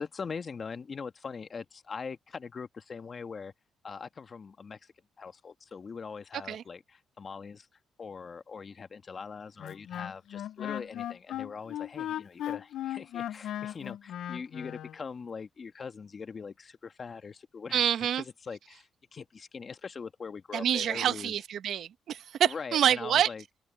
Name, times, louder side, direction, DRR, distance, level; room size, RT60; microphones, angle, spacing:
voice 1, 0.0-3.5 3.8-7.7 8.0-17.8 18.2-21.3 22.4-23.4, left 5 dB, 40° left, 1.5 m, -42 dB
Wind instrument woodwind instrument, 9.6-15.0, left 11 dB, 75° left, 0.4 m, -37 dB
voice 2, 17.7-18.2 20.5-23.3, right 9 dB, 70° right, 1.1 m, -27 dB
open air
cardioid pair, 90°, 0 cm